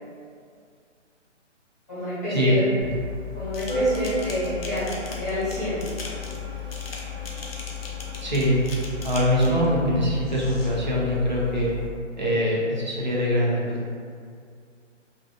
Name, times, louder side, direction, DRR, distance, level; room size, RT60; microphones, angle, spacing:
voice 1, 1.9-2.6 3.3-6.0, left 1 dB, 15° left, -14 dB, 0.9 m, -29 dB
Organ, 2.8-11.9, left 2 dB, 60° right, 1.0 m, -32 dB
sound 1, 3.5-9.7 10.2-10.7, left 3 dB, 55° left, 0.5 m, -40 dB
voice 2, 8.2-8.6 9.0-11.7 12.2-13.8, equal, 40° right, -5 dB, 0.4 m, -23 dB
2.5 x 2.5 x 2.3 m, 2.2 s
hypercardioid pair, 175°, 37 cm